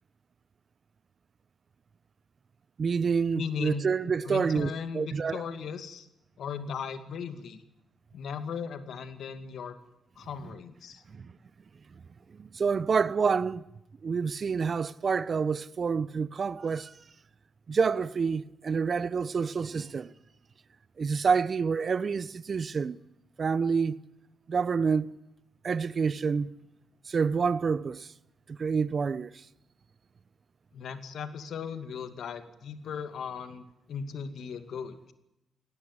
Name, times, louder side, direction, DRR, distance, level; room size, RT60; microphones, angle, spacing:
voice 1, 2.8-5.5 11.1-11.3 12.3-13.6 14.0-16.9 17.7-20.1 21.0-23.0 23.4-24.0 24.5-25.1 25.6-26.5 27.1-28.1 28.5-29.3, right 5 dB, 50° right, 0.9 m, -28 dB
voice 2, 3.4-3.8 4.2-6.1 6.4-7.6 8.1-9.7 10.2-11.0 30.7-35.1, left 6 dB, 70° left, 2.3 m, -37 dB
18.0 x 18.0 x 9.7 m
supercardioid pair, 60°, 0 cm